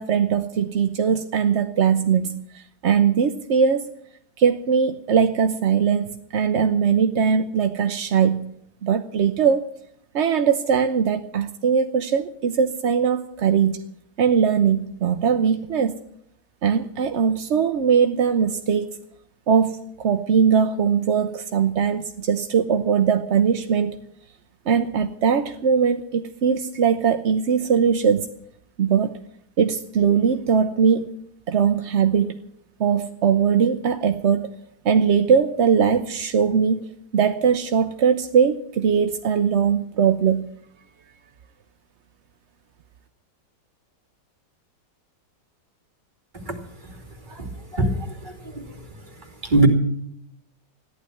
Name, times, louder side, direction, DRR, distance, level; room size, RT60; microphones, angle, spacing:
voice 1, 0.0-3.9 4.4-8.5 8.8-9.7 10.1-13.9 14.2-16.0 16.6-18.9 19.5-23.9 24.7-28.3 28.8-29.2 29.6-31.1 31.5-32.3 32.8-34.5 34.8-36.9 37.1-40.5, right 7 dB, 55° right, 0.8 m, -20 dB
voice 2, 47.3-48.8 49.4-49.7, right 2 dB, 25° right, 2.8 m, -23 dB
14.5 x 11.0 x 8.4 m
omnidirectional pair, 1.9 m